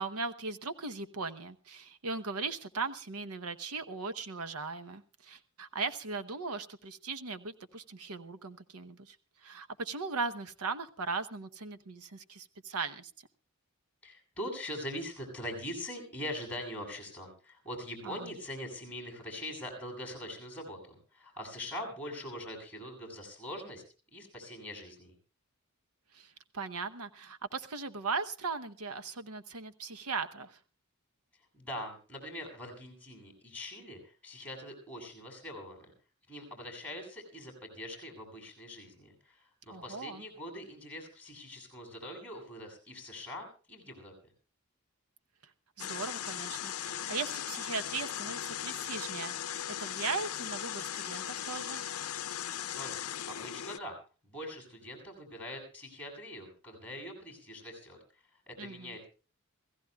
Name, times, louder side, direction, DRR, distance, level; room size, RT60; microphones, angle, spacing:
voice 1, 0.0-9.2 9.4-13.1 18.0-18.3 26.1-30.6 39.7-40.2 45.8-51.8 58.6-59.0, right 4 dB, 90° right, 9 dB, 0.9 m, -38 dB
voice 2, 14.0-23.8 24.1-25.1 31.5-35.9 36.3-44.1 52.7-54.0 54.2-58.0 58.5-59.1, left 1 dB, 5° left, 1 dB, 7.8 m, -43 dB
sound 1, 45.8-53.8, left 10 dB, 80° left, 0.6 m, -38 dB
27.5 x 16.5 x 2.4 m, 0.37 s
head